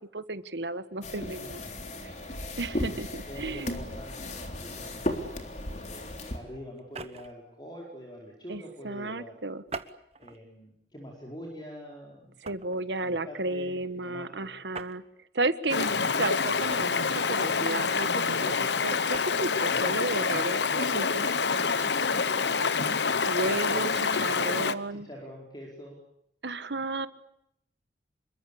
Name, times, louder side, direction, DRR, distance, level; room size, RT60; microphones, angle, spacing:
voice 1, 0.1-1.6 2.0-2.2 2.6-3.7 8.5-9.6 12.4-15.0 15.3-15.9 16.2-18.1 18.4-18.5 18.8-22.7 23.3-25.1 26.4-27.1, right 2 dB, 80° right, 12 dB, 1.4 m, -33 dB
sound 1, 1.0-6.4, left 1 dB, 40° left, 3.6 m, -35 dB
voice 2, 1.2-1.8 3.3-5.2 5.7-9.4 10.2-12.3 13.0-14.6 15.9-16.2 18.5-18.7 23.4-23.8 24.9-26.0, equal, 25° left, -1 dB, 4.9 m, -45 dB
sound 2, 6.8-7.4 9.7-10.4 11.1-11.3 12.4-12.8 14.7-15.0 16.7-17.2 18.9-19.3, right 4 dB, 35° right, 1.2 m, -42 dB
Stream, 15.7-24.7, left 5 dB, 80° left, 1.1 m, -27 dB
26.5 x 23.0 x 8.6 m, 0.76 s
head